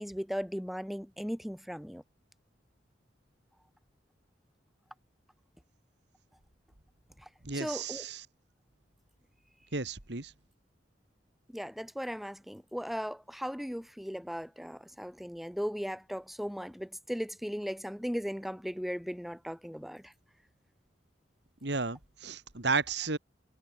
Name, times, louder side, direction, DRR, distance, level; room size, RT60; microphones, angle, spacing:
voice 1, 0.0-2.0 7.5-8.0 11.5-20.1, equal, ahead, 2.8 m, -37 dB
voice 2, 7.4-8.2 9.7-10.3 21.6-23.2, right 4 dB, 70° right, 2.2 m, -33 dB
head